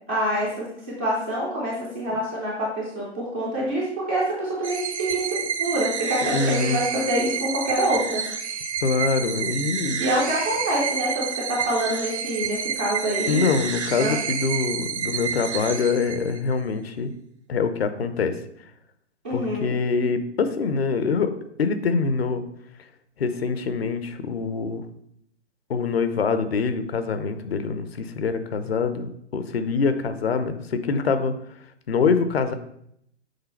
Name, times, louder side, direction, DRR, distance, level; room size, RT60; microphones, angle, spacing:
voice 1, 0.1-0.7 1.0-8.2 10.0-13.5 14.0-14.2 19.2-19.7, right 1 dB, 10° right, -5 dB, 0.3 m, -26 dB
sound 1, 4.6-16.5, right 7 dB, 70° right, 0.8 m, -29 dB
voice 2, 6.2-6.8 8.8-10.0 13.3-17.1 17.5-18.3 19.3-21.3 21.6-22.4 23.2-24.8 25.7-31.3 31.9-32.5, left 5 dB, 60° left, 10 dB, 0.7 m, -24 dB
6.7 x 3.8 x 4.3 m, 0.73 s
figure-of-eight pair, 125°, 35 cm